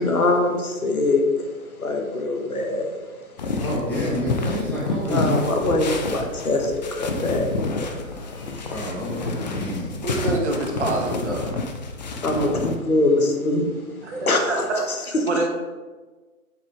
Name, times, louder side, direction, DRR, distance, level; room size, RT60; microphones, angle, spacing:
voice 1, 0.0-1.5 1.8-2.9 5.1-7.5 8.5-8.9 12.2-13.7 14.3-14.6, left 2 dB, 80° left, 3 dB, 1.5 m, -23 dB
sound 1, 3.4-12.8, left 3 dB, 30° left, 0.6 m, -29 dB
voice 2, 3.6-5.4 8.7-10.0, equal, 5° left, -7 dB, 1.8 m, -28 dB
voice 3, 10.0-11.6 14.0-14.8 15.0-15.5, right 2 dB, 50° right, 0 dB, 1.8 m, -26 dB
7.7 x 6.5 x 3.6 m, 1.3 s
figure-of-eight pair, 135°, 42 cm